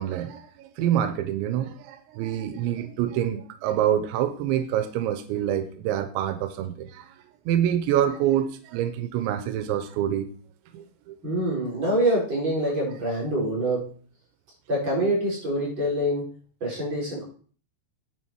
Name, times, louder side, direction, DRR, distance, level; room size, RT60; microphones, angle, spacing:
voice 1, 0.0-7.1 7.5-10.3 10.7-11.5, right 10 dB, 90° right, 3.1 m, -26 dB
voice 2, 11.2-13.8 14.7-16.3 16.6-17.2, right 1 dB, 25° right, 5.8 m, -25 dB
10.0 x 7.8 x 4.7 m
omnidirectional pair, 5.1 m